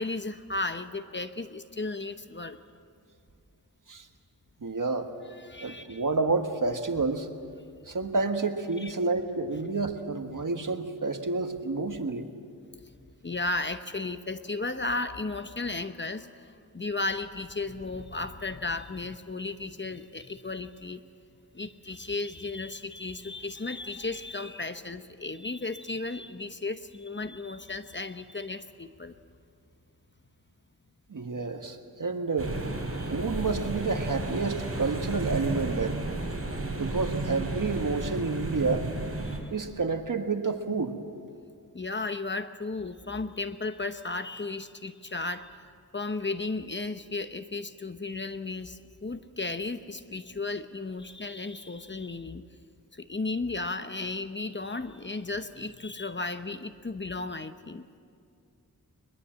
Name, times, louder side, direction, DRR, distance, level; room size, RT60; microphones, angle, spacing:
voice 1, 0.0-2.6 5.3-6.0 8.8-8.9 13.2-21.0 21.5-29.1 32.9-33.1 39.2-39.5 41.7-45.6 45.9-52.4 52.9-57.9, left 3 dB, 30° left, 10 dB, 0.9 m, -34 dB
voice 2, 4.6-5.1 5.6-7.3 7.9-12.3 31.1-32.5 33.1-36.0 36.8-38.9 39.5-40.9, right 3 dB, 55° right, 6 dB, 1.6 m, -29 dB
sound 1, 32.4-39.4, right 2 dB, 40° right, 4.2 m, -33 dB
22.5 x 21.0 x 7.6 m, 2.3 s
wide cardioid pair, 65°, 37 cm